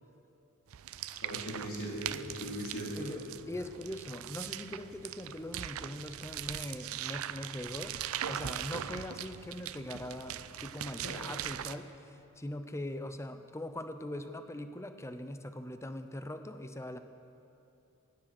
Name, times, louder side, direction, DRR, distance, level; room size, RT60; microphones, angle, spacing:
sound 1, 0.7-11.8, right 11 dB, 70° right, 0.4 m, -41 dB
voice 1, 1.2-3.1 11.0-11.2, equal, 65° left, -4 dB, 3.6 m, -39 dB
voice 2, 2.9-8.0 8.3-17.0, left 1 dB, 15° left, 9 dB, 0.6 m, -41 dB
16.0 x 10.0 x 6.0 m, 2.8 s
head